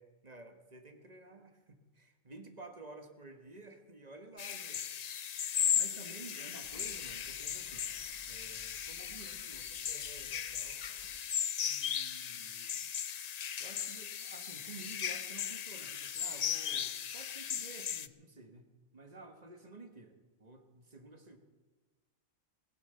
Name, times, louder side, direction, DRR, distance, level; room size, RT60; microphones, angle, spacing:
voice 1, 0.0-4.8 5.7-7.9 8.3-10.8 11.6-12.7 13.6-21.4, right 3 dB, 30° right, 6 dB, 1.5 m, -52 dB
sound 1, 4.4-18.1, left 8 dB, 70° left, 0.3 m, -37 dB
sound 2, 6.6-12.9, left 3 dB, 30° left, 1.1 m, -60 dB
20.5 x 9.4 x 6.8 m, 1.3 s
omnidirectional pair, 1.4 m